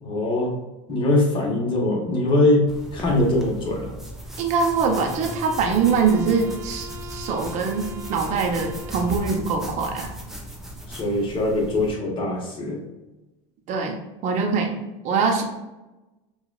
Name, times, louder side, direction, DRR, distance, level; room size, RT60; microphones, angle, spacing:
voice 1, 0.0-0.5 0.9-2.7 2.9-3.9 10.9-12.8, left 2 dB, 30° left, -2 dB, 1.2 m, -22 dB
sound 1, 2.7-11.9, equal, ahead, 0.6 m, -37 dB
voice 2, 4.4-10.1 13.7-14.0 14.2-14.8 15.0-15.4, right 5 dB, 45° right, 2 dB, 0.8 m, -23 dB
sound 2, 4.6-9.6, left 1 dB, 90° right, 0.4 m, -40 dB
4.7 x 2.4 x 2.4 m, 1.0 s
supercardioid pair, 115°, 16 cm